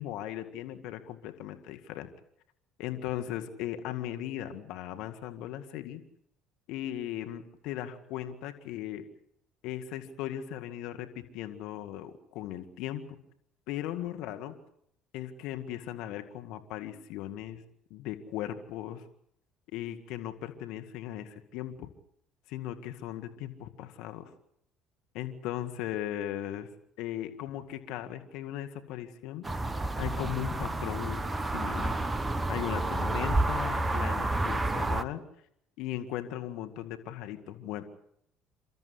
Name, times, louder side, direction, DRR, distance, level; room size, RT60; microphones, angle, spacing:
voice 1, 0.0-2.1 2.8-6.0 6.7-9.1 9.6-13.2 13.7-14.5 15.1-17.6 17.9-19.0 19.7-21.9 22.5-24.3 25.1-26.7 27.0-29.7 30.0-31.2 31.5-32.0 32.5-35.2 35.8-37.8, left 12 dB, 70° left, 7 dB, 2.1 m, -37 dB
sound 1, 29.4-35.0, right 2 dB, 20° right, 1.3 m, -30 dB
29.5 x 13.5 x 9.7 m, 0.72 s
hypercardioid pair, 70°, 0 cm